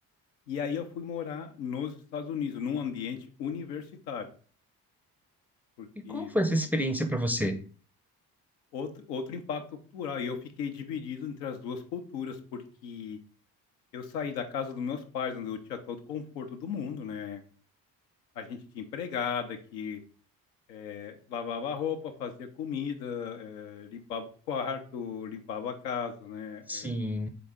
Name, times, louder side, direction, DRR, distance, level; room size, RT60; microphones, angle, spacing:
voice 1, 0.5-4.3 5.8-6.3 8.7-9.6 9.9-13.2 13.9-17.4 18.4-20.0 20.7-26.9, left 7 dB, 80° left, 6 dB, 0.7 m, -35 dB
voice 2, 6.0-7.5 26.7-27.3, equal, 5° right, 6 dB, 0.4 m, -29 dB
3.8 x 3.8 x 3.5 m, 0.41 s
figure-of-eight pair, 40°, 49 cm